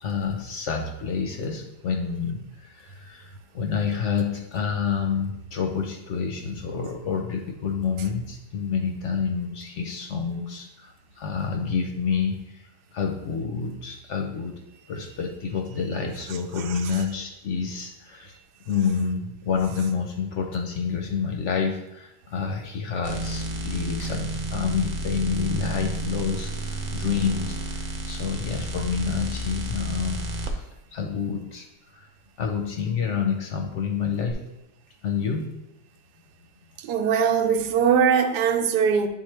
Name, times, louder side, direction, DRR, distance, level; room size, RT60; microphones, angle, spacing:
voice 1, 0.0-14.6 14.9-18.4 18.7-30.6 30.9-31.7 31.9-32.1 32.4-34.4 35.0-35.6, left 6 dB, 60° left, 3 dB, 0.8 m, -28 dB
sound 1, 23.0-30.5 34.3-34.4, right 1 dB, 50° right, 0.6 m, -31 dB
voice 2, 36.8-39.1, right 7 dB, 85° right, 7 dB, 1.2 m, -21 dB
9.5 x 3.9 x 3.2 m, 0.91 s
omnidirectional pair, 1.7 m